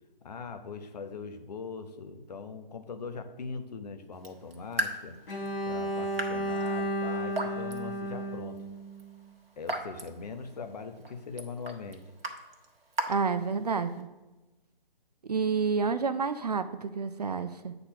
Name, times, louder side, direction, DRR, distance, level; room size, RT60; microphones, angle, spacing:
voice 1, 0.2-5.2 5.7-8.6 9.6-12.0, left 5 dB, 45° left, 7 dB, 0.9 m, -41 dB
Raindrop / Drip, 4.1-14.0, right 2 dB, 75° right, 1.4 m, -40 dB
Bowed string instrument, 5.3-9.3, right 1 dB, 70° left, 1.6 m, -33 dB
voice 2, 13.1-14.1 15.2-17.8, right 5 dB, 45° right, 11 dB, 0.4 m, -29 dB
8.7 x 4.1 x 5.6 m, 1.1 s
figure-of-eight pair, 155°, 29 cm